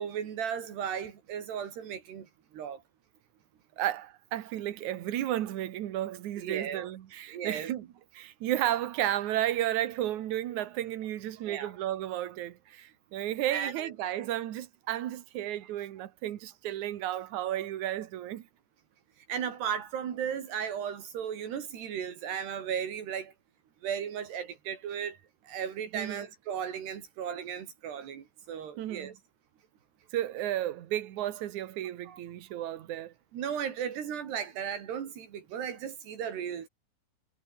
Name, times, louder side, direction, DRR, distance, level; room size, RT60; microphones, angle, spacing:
voice 1, 0.0-2.3 2.5-2.8 6.4-6.9 7.3-7.7 11.5-11.7 13.5-13.9 19.3-23.3 23.8-25.2 25.4-29.1 32.1-32.2 33.3-36.7, right 8 dB, 80° right, 5.0 m, -35 dB
voice 2, 3.8-7.9 8.1-18.5 25.9-26.2 28.8-29.1 30.1-33.1, right 12 dB, 60° right, 2.2 m, -33 dB
omnidirectional pair, 4.7 m